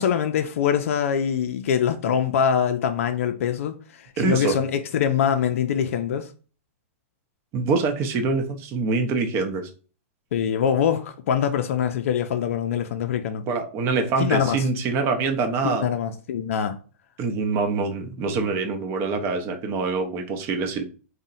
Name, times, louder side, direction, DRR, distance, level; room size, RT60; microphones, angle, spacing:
voice 1, 0.0-6.3 10.3-13.4 14.2-14.6 15.6-16.8, left 8 dB, 70° left, 0.4 m, -24 dB
voice 2, 4.2-4.6 7.5-9.7 13.5-15.9 17.2-20.8, right 4 dB, 35° right, 0.6 m, -25 dB
2.8 x 2.1 x 3.8 m
hypercardioid pair, 130°, 8 cm